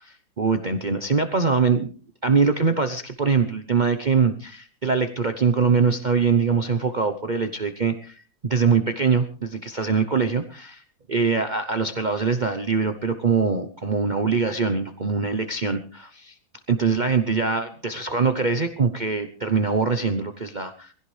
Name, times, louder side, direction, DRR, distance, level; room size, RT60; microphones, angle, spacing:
voice 1, 0.4-1.9 2.2-10.8 11.1-16.3 16.7-20.9, right 5 dB, 35° right, 7 dB, 0.9 m, -23 dB
22.5 x 16.5 x 3.3 m, 0.37 s
omnidirectional pair, 1.7 m